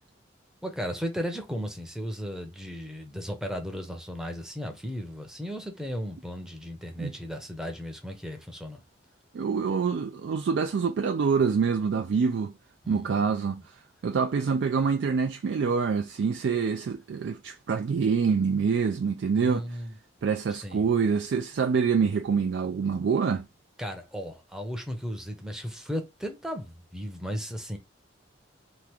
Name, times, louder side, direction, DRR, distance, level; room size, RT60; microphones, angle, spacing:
voice 1, 0.6-8.8 12.8-13.5 19.3-20.0 20.5-20.8 23.8-27.8, equal, 5° right, 0.7 m, -35 dB
voice 2, 9.3-12.5 12.9-13.6 14.0-19.8 20.2-23.5, right 5 dB, 70° right, 0.3 m, -26 dB
3.0 x 2.4 x 3.4 m
head